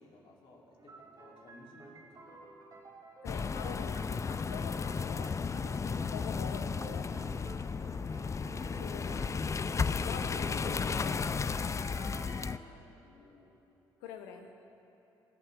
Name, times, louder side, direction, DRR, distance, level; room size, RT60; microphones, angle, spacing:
voice 1, 0.0-2.4 8.7-9.4 9.6-10.3 11.4-13.5, left 2 dB, 60° left, -2 dB, 3.1 m, -58 dB
sound 1, 0.8-12.5, right 2 dB, 35° right, 2.9 m, -51 dB
voice 2, 3.2-7.0 8.7-9.6 9.9-11.1 14.0-14.5, left 6 dB, 90° left, 5 dB, 1.1 m, -45 dB
sound 2, 3.3-12.6, left 5 dB, 30° left, 0.4 m, -34 dB
21.5 x 12.5 x 3.5 m, 3.0 s
hypercardioid pair, 55°, 10 cm